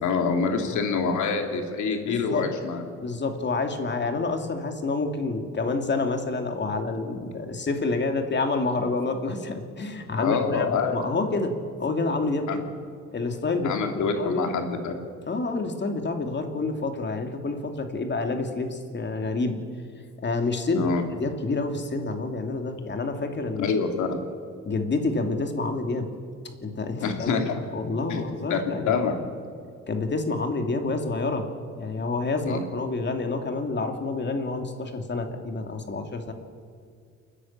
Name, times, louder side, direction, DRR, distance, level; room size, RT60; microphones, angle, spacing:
voice 1, 0.0-2.8 10.2-11.0 12.5-12.6 13.6-14.9 20.7-21.0 23.6-24.1 27.0-27.7 28.1-28.2 28.5-29.2 32.5-32.6, left 5 dB, 85° left, 4 dB, 2.9 m, -26 dB
voice 2, 2.1-2.5 3.0-11.5 11.8-12.6 13.1-14.5 15.3-19.7 20.2-20.9 21.2-23.7 24.6-26.1 26.6-27.4 27.7-28.9 29.9-31.5 31.7-36.3, left 3 dB, 40° left, 5 dB, 2.7 m, -28 dB
29.5 x 10.0 x 8.9 m, 2.2 s
cardioid pair, 95°, 29 cm